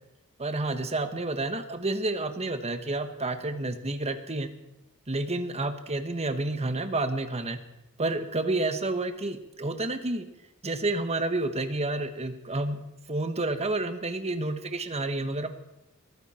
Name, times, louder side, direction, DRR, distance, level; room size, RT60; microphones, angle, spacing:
voice 1, 0.4-4.5 5.1-7.6 8.0-10.2 10.6-12.8 13.1-15.5, right 2 dB, 30° right, 8 dB, 1.4 m, -30 dB
22.0 x 14.5 x 4.4 m, 0.92 s
head